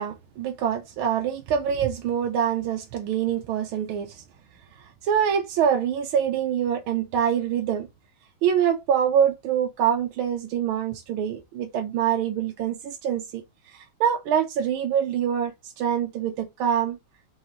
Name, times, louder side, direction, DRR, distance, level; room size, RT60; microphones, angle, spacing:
voice 1, 0.0-4.2 5.0-7.9 8.4-13.4 13.7-17.0, right 8 dB, 80° right, 1.5 m, -25 dB
4.7 x 3.2 x 2.6 m
omnidirectional pair, 2.3 m